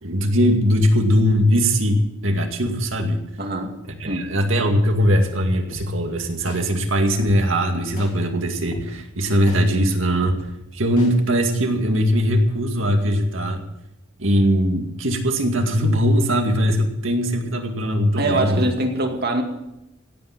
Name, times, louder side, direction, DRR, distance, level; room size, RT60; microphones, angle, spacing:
voice 1, 0.0-3.2 4.0-10.4 10.7-13.6 14.2-18.7, equal, 70° right, 4 dB, 2.2 m, -20 dB
voice 2, 3.4-3.8 4.0-4.3 18.2-19.4, right 1 dB, 50° right, 3 dB, 2.3 m, -23 dB
sound 1, 5.7-5.8 6.5-6.6 7.2-7.3 8.0-8.1 8.7-8.8 9.5-9.6 10.2-10.3 11.0-11.1, left 1 dB, 40° left, 3.8 m, -35 dB
16.5 x 8.9 x 7.5 m, 0.86 s
head